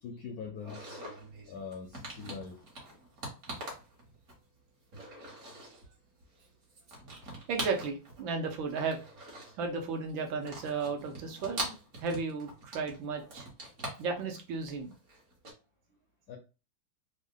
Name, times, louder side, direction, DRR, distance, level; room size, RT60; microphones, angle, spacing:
voice 1, 0.0-1.0 1.5-2.6 16.3-16.4, left 5 dB, 75° left, 0.8 m, -43 dB
sound 1, 0.6-4.6 4.9-5.9 6.2-8.3 8.5-9.7 10.1-15.5, right 1 dB, 45° right, 1.3 m, -43 dB
voice 2, 7.5-9.0 9.6-11.7 12.0-13.5 14.0-14.9, right 4 dB, 80° right, 1.5 m, -34 dB
3.6 x 2.1 x 3.6 m
omnidirectional pair, 2.1 m